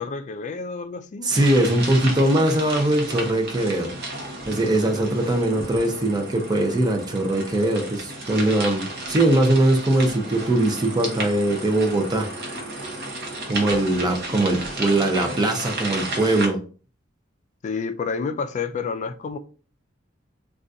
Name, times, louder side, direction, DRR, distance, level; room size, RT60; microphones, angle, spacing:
voice 1, 0.0-1.3 17.6-19.4, left 5 dB, 40° left, 0.3 m, -29 dB
voice 2, 1.2-3.9 4.5-12.3 13.5-16.6, right 1 dB, 20° right, 0.5 m, -21 dB
sound 1, 1.3-16.5, right 2 dB, 55° right, 0.8 m, -33 dB
3.8 x 2.3 x 2.5 m
head